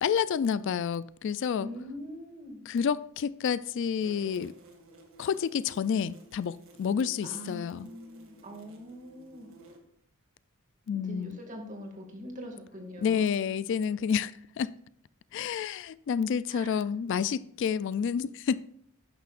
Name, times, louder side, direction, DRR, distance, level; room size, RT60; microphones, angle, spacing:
voice 1, 0.0-1.7 2.7-4.5 5.2-7.9 10.9-11.4 13.0-14.7 15.3-18.6, left 7 dB, 55° left, 0.3 m, -29 dB
voice 2, 1.6-2.6 7.2-9.5 10.9-13.2 16.5-16.8, equal, 35° right, 2.1 m, -42 dB
sound 1, 4.0-9.8, right 1 dB, 65° right, 2.0 m, -55 dB
11.5 x 9.5 x 2.5 m
head